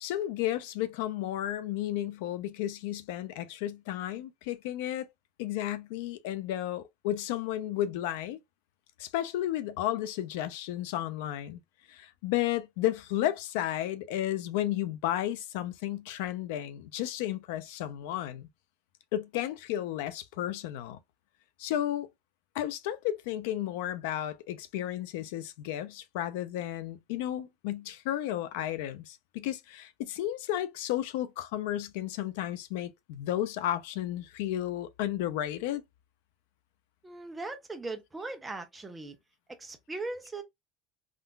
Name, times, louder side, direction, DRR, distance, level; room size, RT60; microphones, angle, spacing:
voice 1, 0.0-5.1 5.4-8.4 9.0-11.6 11.9-18.5 19.1-21.0 21.6-22.1 22.5-35.8, left 13 dB, 90° left, 0.4 m, -33 dB
voice 2, 37.0-39.2 39.5-40.4, right 3 dB, 10° right, 0.6 m, -39 dB
3.7 x 2.4 x 2.2 m
cardioid pair, 165°, 0 cm